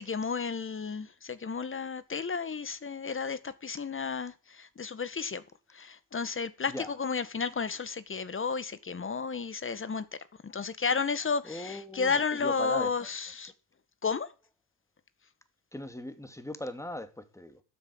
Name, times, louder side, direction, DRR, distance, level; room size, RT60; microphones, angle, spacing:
voice 1, 0.0-5.4 5.7-10.1 10.4-13.5 14.0-14.3, left 5 dB, 30° left, 1.7 m, -32 dB
voice 2, 11.4-13.1 15.7-17.6, left 1 dB, 5° left, 2.7 m, -39 dB
12.5 x 8.2 x 7.9 m
supercardioid pair, 65°, 40 cm